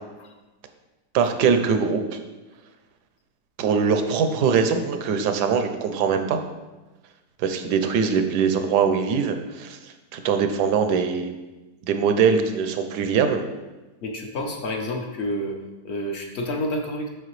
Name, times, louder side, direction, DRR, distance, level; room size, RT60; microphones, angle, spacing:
voice 1, 1.1-2.2 3.6-6.4 7.4-9.8 10.1-11.3 11.8-13.4, right 6 dB, 80° right, 7 dB, 1.2 m, -22 dB
voice 2, 14.0-15.6 15.8-17.1, left 1 dB, 55° left, 3 dB, 0.8 m, -29 dB
6.7 x 5.8 x 3.1 m, 1.1 s
omnidirectional pair, 1.8 m